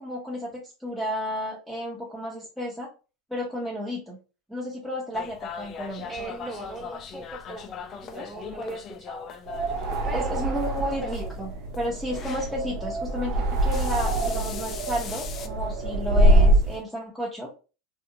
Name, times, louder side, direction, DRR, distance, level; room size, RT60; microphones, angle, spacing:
voice 1, 0.0-2.9 3.3-4.2 4.5-6.1 8.0-8.2 10.1-11.5 11.8-17.5, equal, ahead, -4 dB, 0.6 m, -32 dB
sound 1, 5.1-12.5 13.5-15.5, left 7 dB, 40° left, 0.3 m, -40 dB
voice 2, 6.1-9.3 10.0-11.5, right 2 dB, 15° right, 2 dB, 1.0 m, -39 dB
sound 2, 9.5-16.8, right 1 dB, 60° right, 0.7 m, -24 dB
2.7 x 2.0 x 2.6 m, 0.33 s
hypercardioid pair, 105°, 0 cm